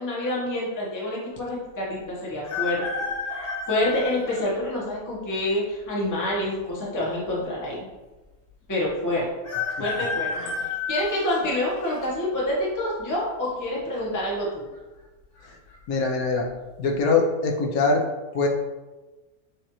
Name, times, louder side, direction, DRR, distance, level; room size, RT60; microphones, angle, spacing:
voice 1, 0.0-2.8 3.7-7.8 8.7-9.3 9.8-10.3 10.9-14.7, left 1 dB, 15° left, -5 dB, 0.8 m, -27 dB
sound 1, 2.4-4.5 5.1-5.2 6.3-7.0 7.3-7.4 7.5-7.6 9.4-12.1 12.6-13.0 14.1-14.5 14.7-14.8 15.4-15.7 16.2-16.4, left 5 dB, 40° left, 1.2 m, -31 dB
voice 2, 15.9-16.4 16.8-18.0 18.3-18.5, left 4 dB, 75° left, 1 dB, 1.2 m, -22 dB
6.2 x 2.5 x 3.0 m, 1.2 s
omnidirectional pair, 1.6 m